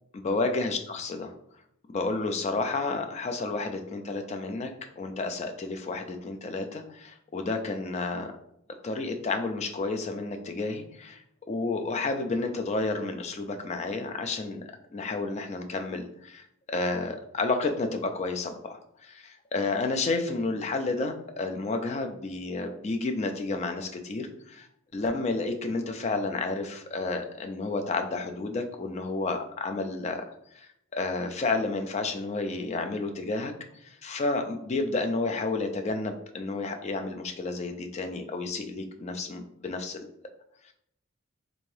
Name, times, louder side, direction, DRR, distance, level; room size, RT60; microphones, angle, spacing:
voice 1, 0.1-1.3 1.9-4.7 5.0-8.3 8.8-11.2 11.5-14.6 14.9-24.7 24.9-30.2 30.5-33.5 33.8-40.1 40.7-40.8, left 3 dB, 30° left, 5 dB, 0.3 m, -31 dB
3.5 x 2.6 x 3.2 m, 0.74 s
head